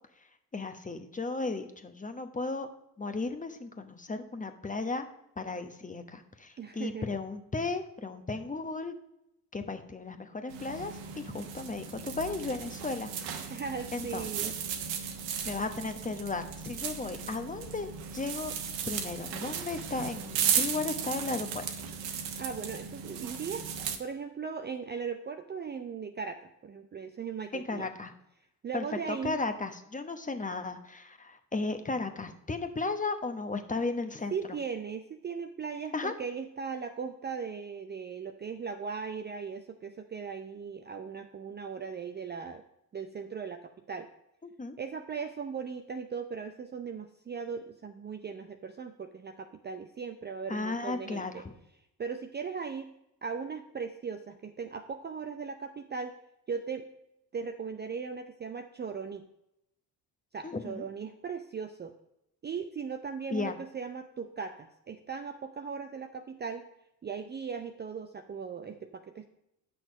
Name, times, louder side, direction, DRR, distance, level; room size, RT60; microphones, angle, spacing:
voice 1, 0.5-2.7 3.0-5.0 5.4-8.9 9.5-13.1 13.4-13.5 13.9-14.5 15.4-18.5 18.9-21.6 27.5-28.1 28.7-34.4 35.9-36.1 44.6-44.8 50.5-51.5 60.4-60.9 63.3-63.6, left 3 dB, 15° left, 8 dB, 0.9 m, -35 dB
voice 2, 6.6-7.1 13.5-14.5 22.4-23.6 24.0-27.9 28.6-29.4 34.3-42.6 42.9-44.1 44.8-51.4 52.0-52.9 53.2-56.2 56.5-56.9 57.3-59.3 60.3-61.9 62.4-66.7 67.0-69.3, right 6 dB, 20° right, 6 dB, 0.5 m, -38 dB
sound 1, 10.5-24.0, right 7 dB, 60° right, 1.1 m, -36 dB
9.1 x 6.1 x 5.1 m, 0.83 s
hypercardioid pair, 50°, 49 cm